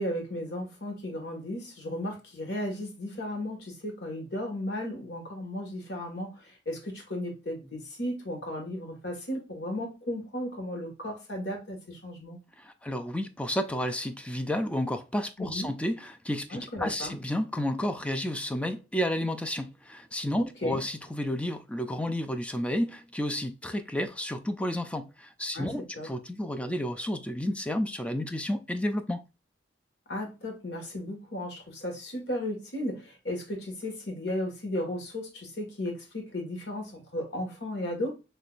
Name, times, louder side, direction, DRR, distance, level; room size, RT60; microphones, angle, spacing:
voice 1, 0.0-12.4 15.4-15.7 16.5-17.2 20.4-20.8 25.5-25.7 26.0-26.1 30.1-38.1, left 1 dB, 70° left, 1.8 m, -35 dB
voice 2, 12.6-29.2, left 1 dB, 5° left, 0.4 m, -31 dB
6.0 x 3.2 x 2.5 m
head